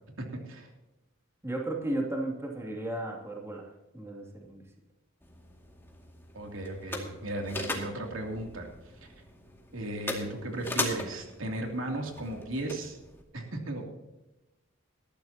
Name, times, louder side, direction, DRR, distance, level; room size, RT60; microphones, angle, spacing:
voice 1, 0.2-0.7 6.3-8.7 9.0-9.1 9.7-13.0 13.3-13.9, right 1 dB, 85° right, 2 dB, 2.9 m, -36 dB
voice 2, 1.4-4.6, right 1 dB, 15° right, 0 dB, 2.6 m, -34 dB
sound 1, 5.2-13.2, left 2 dB, 10° left, 2.3 m, -39 dB
19.5 x 13.5 x 2.9 m, 0.99 s
head